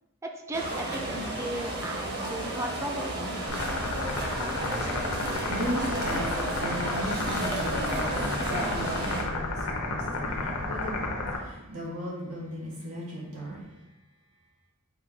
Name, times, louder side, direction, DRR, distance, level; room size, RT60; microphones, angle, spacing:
voice 1, 0.3-3.4, right 1 dB, 15° right, 2 dB, 0.4 m, -36 dB
sound 1, 0.5-9.2, right 1 dB, 50° right, 0.8 m, -32 dB
sound 2, 3.5-11.4, left 2 dB, 75° left, 0.7 m, -32 dB
voice 2, 5.4-8.1 8.4-11.1 11.4-13.6, equal, 75° right, -5 dB, 1.4 m, -36 dB
4.6 x 2.2 x 4.4 m, 0.97 s
head